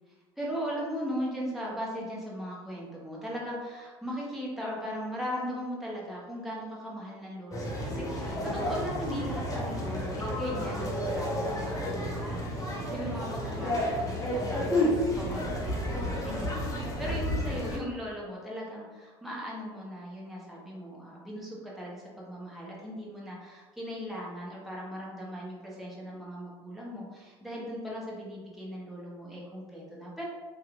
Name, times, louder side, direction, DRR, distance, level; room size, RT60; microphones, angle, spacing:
voice 1, 0.4-30.2, equal, ahead, -5 dB, 0.9 m, -38 dB
sound 1, 7.5-17.8, left 1 dB, 25° left, 0.8 m, -31 dB
2.9 x 2.4 x 2.5 m, 1.4 s
hypercardioid pair, 65°, 13 cm